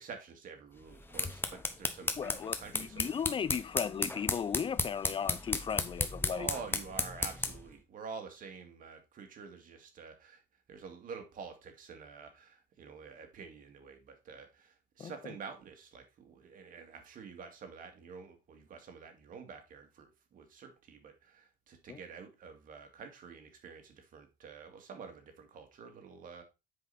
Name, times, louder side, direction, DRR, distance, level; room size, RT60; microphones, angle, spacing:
voice 1, 0.0-3.1 6.3-10.4 10.7-26.4, right 5 dB, 55° right, 2.2 m, -48 dB
sound 1, 0.9-7.7, left 3 dB, 15° left, 0.9 m, -35 dB
voice 2, 2.2-6.5 15.0-15.1 21.9-22.0, left 7 dB, 30° left, 0.5 m, -36 dB
7.8 x 5.0 x 4.1 m
cardioid pair, 110°, 17 cm